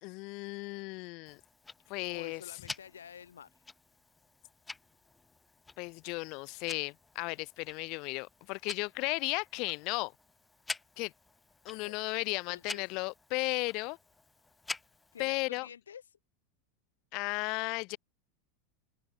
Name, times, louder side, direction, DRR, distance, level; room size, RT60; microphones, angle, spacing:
voice 1, 0.0-1.4 1.9-2.4 5.8-10.1 11.0-11.1 11.6-14.0 15.2-15.7 17.1-18.0, left 27 dB, 55° left, 0.7 m, -35 dB
Tick-tock, 1.3-15.3, left 3 dB, 15° left, 5.3 m, -48 dB
voice 2, 2.1-3.5 11.7-12.0 12.5-12.8 15.1-16.2, left 8 dB, 85° left, 1.5 m, -50 dB
open air
hypercardioid pair, 95°, 0 cm